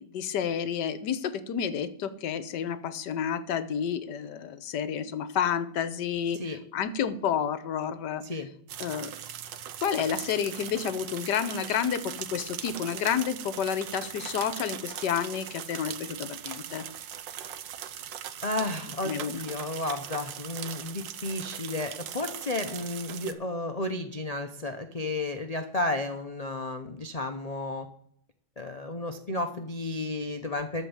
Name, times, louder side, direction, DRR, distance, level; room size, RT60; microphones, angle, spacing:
voice 1, 0.0-8.2 8.8-9.1 9.8-16.9 19.0-19.4, left 8 dB, 70° left, 13 dB, 1.4 m, -30 dB
sound 1, 8.7-23.3, right 10 dB, 80° right, 1.5 m, -40 dB
voice 2, 18.4-27.9 28.6-30.8, left 2 dB, 30° left, 5 dB, 0.7 m, -32 dB
13.5 x 4.6 x 8.7 m, 0.68 s
omnidirectional pair, 2.0 m